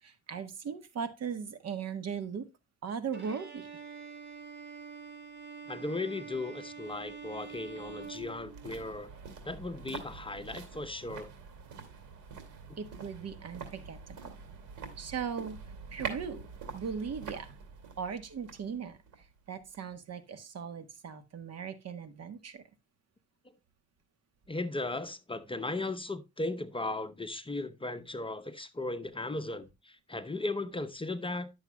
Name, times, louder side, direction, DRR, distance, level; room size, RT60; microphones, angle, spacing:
voice 1, 0.0-2.4 2.8-3.7 12.8-14.2 15.0-15.6 15.9-16.5 16.7-17.6 18.0-22.6, right 6 dB, 55° right, 1.4 m, -38 dB
Bowed string instrument, 3.1-9.0, right 6 dB, 35° right, 3.1 m, -46 dB
voice 2, 5.7-9.1 9.4-11.3 12.7-12.8 24.5-31.5, left 2 dB, 15° left, 0.8 m, -36 dB
sound 1, 6.8-20.0 20.3-20.4, right 5 dB, 80° right, 2.6 m, -46 dB
11.0 x 7.1 x 2.3 m
cardioid pair, 90°, 30 cm